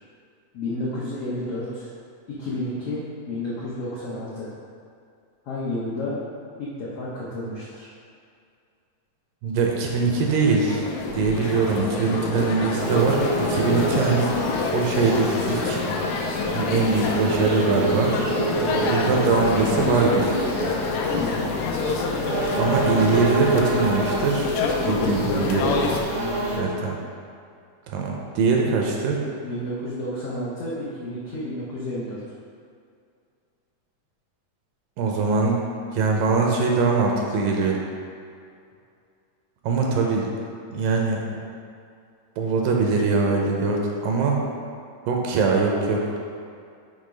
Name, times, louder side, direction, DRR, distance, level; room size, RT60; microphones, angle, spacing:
voice 1, 0.5-1.9 2.3-3.0 3.3-4.5 5.4-6.2 6.6-7.9 18.5-19.0 21.1-21.5 24.8-26.9 29.4-32.2, left 1 dB, 70° left, -9 dB, 1.5 m, -31 dB
voice 2, 9.4-10.9 11.1-14.4 14.7-15.8 16.5-18.1 18.9-20.4 22.6-24.6 24.8-25.7 26.6-27.0 27.9-29.2 35.0-35.6 35.9-37.8 39.6-40.3 40.7-41.2 42.4-44.4 45.1-46.2, right 4 dB, 80° right, 0 dB, 2.3 m, -22 dB
sound 1, 9.9-26.0, left 4 dB, 90° left, 1.6 m, -27 dB
sound 2, 12.8-26.6, right 2 dB, 50° right, 1.0 m, -30 dB
6.5 x 3.5 x 5.1 m, 2.3 s
omnidirectional pair, 4.0 m